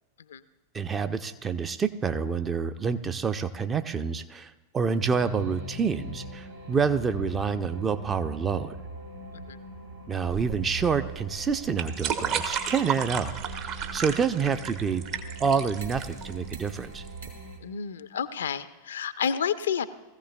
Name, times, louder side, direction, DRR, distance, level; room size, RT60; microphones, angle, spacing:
voice 1, 0.7-8.7 10.1-15.1 15.4-17.0, right 6 dB, 20° right, 10 dB, 0.5 m, -28 dB
sound 1, 5.0-17.6, right 1 dB, 75° right, 2.0 m, -41 dB
sound 2, 10.3-17.3, right 7 dB, 45° right, 1.0 m, -33 dB
voice 2, 17.6-19.8, left 7 dB, 65° left, 14 dB, 0.5 m, -30 dB
20.5 x 15.0 x 2.3 m, 1.2 s
figure-of-eight pair, 90°, 0 cm